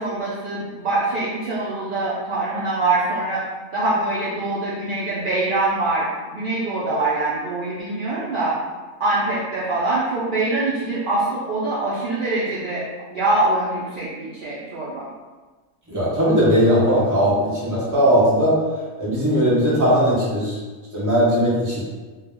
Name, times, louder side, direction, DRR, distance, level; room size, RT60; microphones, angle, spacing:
voice 1, 0.0-3.4 3.7-8.6 9.0-12.8 13.1-15.0, right 2 dB, 75° right, -8 dB, 0.4 m, -24 dB
voice 2, 15.9-18.6 19.0-20.6 20.9-21.8, equal, 15° right, -9 dB, 0.7 m, -18 dB
2.3 x 2.1 x 3.4 m, 1.3 s
omnidirectional pair, 1.5 m